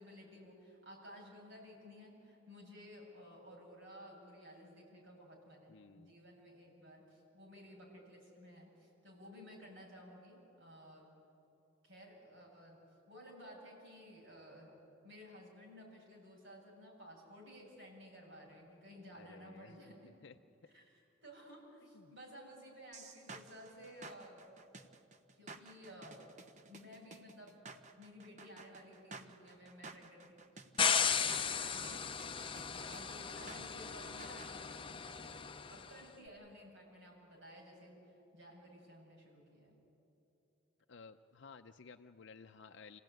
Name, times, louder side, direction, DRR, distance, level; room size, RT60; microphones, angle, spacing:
voice 1, 0.0-11.1 11.8-12.8 13.1-14.7 15.0-20.3 20.7-24.4 25.3-26.3 26.7-32.4 32.7-39.8, equal, 75° right, -2 dB, 7.5 m, -55 dB
voice 2, 5.7-6.1 19.1-19.8 20.2-20.4 21.9-22.1 36.2-36.3 40.9-43.0, left 5 dB, 65° left, 6 dB, 0.6 m, -56 dB
sound 1, 22.9-34.5, right 3 dB, 40° right, 1.0 m, -53 dB
sound 2, 30.8-35.9, left 7 dB, 25° left, 0.7 m, -36 dB
27.0 x 16.5 x 9.2 m, 2.9 s
head